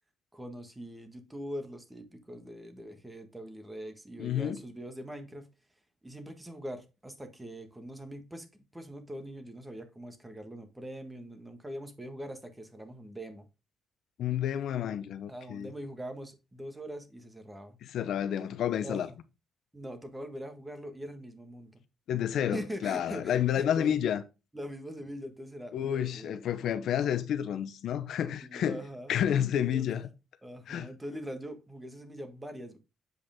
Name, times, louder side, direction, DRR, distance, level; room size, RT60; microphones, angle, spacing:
voice 1, 0.3-5.5 6.0-8.5 8.7-13.5 15.3-17.8 18.8-19.2 19.7-21.8 22.5-24.0 24.5-26.4 28.4-29.2 29.7-30.0 30.4-32.8, equal, 10° right, 1.5 m, -42 dB
voice 2, 4.2-4.6 14.2-15.7 17.8-19.1 22.1-24.2 25.7-28.8 29.1-30.0 30.7-30.9, left 9 dB, 75° left, 0.6 m, -30 dB
7.9 x 5.0 x 3.6 m
cardioid pair, 90°, 0 cm